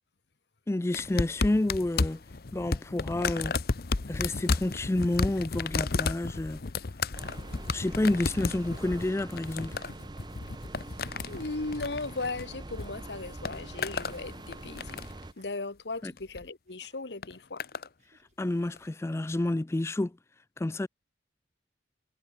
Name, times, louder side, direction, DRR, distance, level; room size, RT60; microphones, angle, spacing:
voice 1, 0.7-2.2 2.5-3.6 4.1-6.6 7.7-9.8 16.0-16.1 18.4-20.2 20.6-20.9, left 1 dB, 15° left, 0.3 m, -29 dB
sound 1, 0.9-12.9 13.2-14.2 14.5-15.2 16.2-16.5 17.2-17.9 18.8-18.9, left 4 dB, 60° left, 0.8 m, -33 dB
Laughter, 4.1-5.2 5.6-6.2 7.0-7.5 8.2-9.5 9.9-10.1 11.0-11.6 12.1-12.2 12.4-12.8 13.9-14.5 15.2-15.5 16.7-17.2 18.0-18.6, right 3 dB, 40° right, 4.5 m, -66 dB
sound 2, 7.1-15.3, right 2 dB, 25° right, 0.7 m, -44 dB
voice 2, 11.3-15.0 15.4-17.6, left 3 dB, 80° left, 1.4 m, -37 dB
head